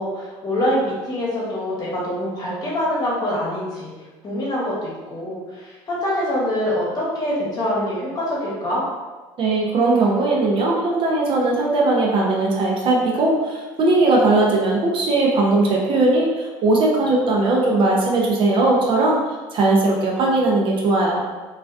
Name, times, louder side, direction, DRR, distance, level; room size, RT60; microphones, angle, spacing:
voice 1, 0.0-3.9 4.2-8.8, left 1 dB, 40° left, -6 dB, 1.0 m, -25 dB
voice 2, 9.4-19.2 19.5-21.2, right 2 dB, 50° right, -2 dB, 0.6 m, -19 dB
2.3 x 2.2 x 2.4 m, 1.2 s
supercardioid pair, 100°, 11 cm